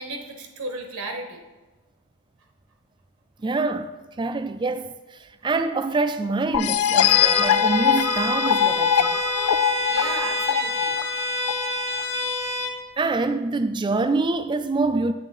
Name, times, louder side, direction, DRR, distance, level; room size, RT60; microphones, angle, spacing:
voice 1, 0.0-1.4 9.9-11.0, right 2 dB, 75° right, 1.0 m, -34 dB
voice 2, 3.4-3.9 4.2-4.9 5.4-9.2 13.0-15.1, right 3 dB, 20° right, 0.3 m, -25 dB
sound 1, 6.5-12.0, left 10 dB, 75° left, 0.3 m, -22 dB
Bowed string instrument, 7.0-12.8, left 2 dB, 30° left, 1.1 m, -27 dB
8.4 x 6.3 x 3.8 m
head